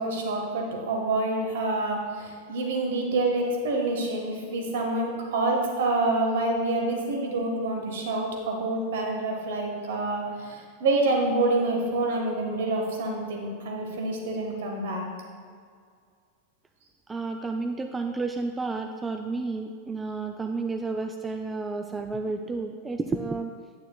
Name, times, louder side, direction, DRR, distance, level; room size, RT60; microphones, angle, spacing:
voice 1, 0.0-15.0, right 2 dB, 55° right, 1 dB, 1.4 m, -27 dB
voice 2, 17.1-23.5, right 3 dB, 15° right, 5 dB, 0.3 m, -31 dB
9.1 x 8.6 x 2.2 m, 2.1 s
figure-of-eight pair, 90°, 0 cm